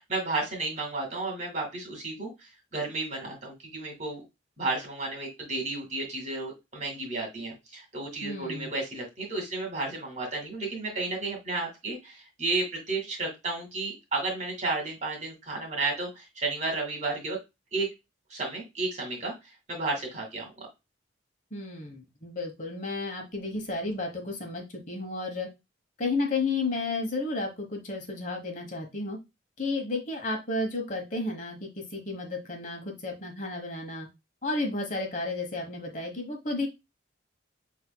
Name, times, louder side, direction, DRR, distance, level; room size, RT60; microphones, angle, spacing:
voice 1, 0.0-4.2 4.6-17.4 17.7-17.9 18.3-19.3 19.7-20.5, right 3 dB, 40° right, 1 dB, 2.1 m, -32 dB
voice 2, 8.2-8.7 21.5-25.5 26.0-29.2 29.6-34.1 34.4-36.7, left 3 dB, 40° left, 2 dB, 1.2 m, -32 dB
6.5 x 3.6 x 2.2 m, 0.23 s
head